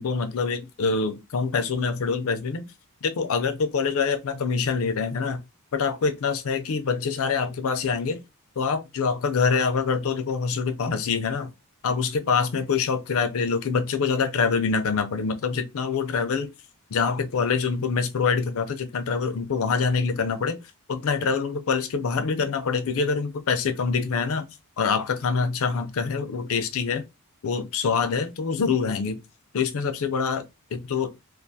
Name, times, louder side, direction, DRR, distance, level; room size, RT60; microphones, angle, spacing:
voice 1, 0.0-2.7 3.0-5.4 5.7-8.2 8.6-11.5 11.8-16.5 16.9-20.6 20.9-24.5 24.8-27.0 27.4-29.2 29.5-30.4 30.7-31.1, left 5 dB, 65° left, 0.4 m, -25 dB
2.4 x 2.3 x 2.6 m
head